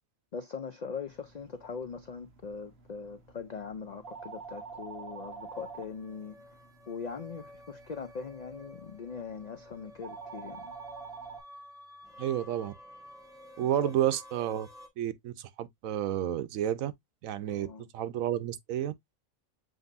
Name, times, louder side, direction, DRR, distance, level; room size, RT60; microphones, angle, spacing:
voice 1, 0.3-6.4 6.9-10.7 13.6-14.0 17.5-17.9, left 5 dB, 70° left, 0.4 m, -41 dB
sound 1, 1.1-11.4, right 5 dB, 55° right, 1.2 m, -48 dB
sound 2, 4.1-14.9, left 1 dB, 5° right, 0.8 m, -52 dB
voice 2, 12.2-12.7 13.6-14.7 15.0-16.9 17.2-17.7 17.9-18.9, right 11 dB, 90° right, 1.1 m, -30 dB
7.8 x 2.6 x 2.5 m
omnidirectional pair, 1.4 m